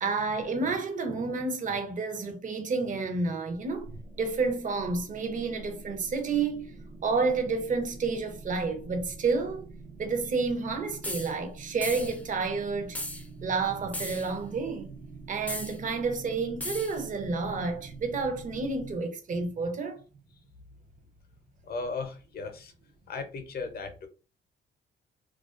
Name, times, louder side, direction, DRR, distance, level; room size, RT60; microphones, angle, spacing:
voice 1, 0.0-6.7 7.0-9.6 10.0-13.0 13.4-14.9 15.3-20.0, right 4 dB, 40° right, 0.6 m, -30 dB
sound 1, 3.5-19.0, right 3 dB, 85° right, 0.7 m, -46 dB
sound 2, 11.0-11.3 11.8-12.2 13.0-13.2 13.9-14.3 15.5-15.8 16.6-17.0, left 1 dB, 5° left, 0.4 m, -36 dB
voice 2, 21.6-22.7 23.1-24.1, left 4 dB, 50° left, 0.6 m, -36 dB
2.3 x 2.2 x 2.4 m
cardioid pair, 90°, 20 cm